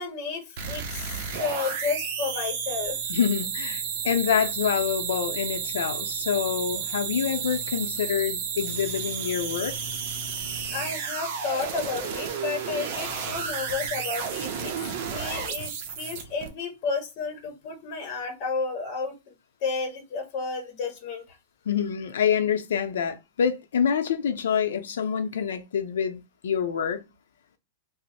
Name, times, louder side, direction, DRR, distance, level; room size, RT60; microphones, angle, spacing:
voice 1, 0.0-3.1 10.7-19.2 19.6-21.4, left 4 dB, 35° left, 0.9 m, -32 dB
sound 1, 0.6-16.5, right 6 dB, 45° right, 0.6 m, -32 dB
voice 2, 3.1-9.7 21.7-27.1, left 7 dB, 90° left, 0.5 m, -26 dB
3.0 x 2.0 x 4.1 m
supercardioid pair, 165°, 0 cm